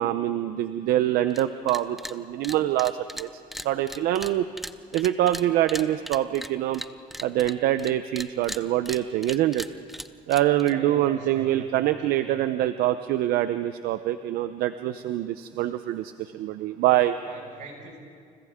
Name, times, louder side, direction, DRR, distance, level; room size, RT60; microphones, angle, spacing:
voice 1, 0.0-3.3 3.6-4.5 4.9-6.8 7.2-9.6 10.3-17.2, right 13 dB, 80° right, 10 dB, 0.8 m, -25 dB
sound 1, 1.3-1.4 1.7-2.1 2.4-7.9 8.2-10.7, equal, ahead, 0.7 m, -38 dB
voice 2, 10.6-12.4 17.2-18.0, right 3 dB, 55° right, 0 dB, 6.2 m, -42 dB
30.0 x 29.0 x 3.7 m, 2.1 s
cardioid pair, 115°, 16 cm